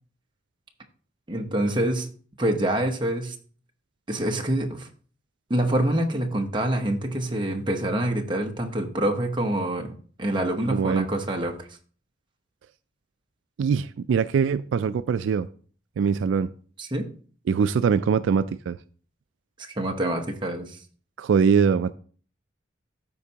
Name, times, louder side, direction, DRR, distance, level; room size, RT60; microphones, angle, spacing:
voice 1, 1.3-2.1 2.4-3.4 4.1-4.9 5.5-9.9 10.2-11.7 16.8-17.1 19.6-20.8, right 1 dB, 25° right, 0.9 m, -26 dB
voice 2, 10.7-11.1 13.6-15.5 16.0-16.5 17.5-18.8 21.2-22.0, right 6 dB, 75° right, 0.3 m, -22 dB
13.5 x 4.5 x 2.8 m
head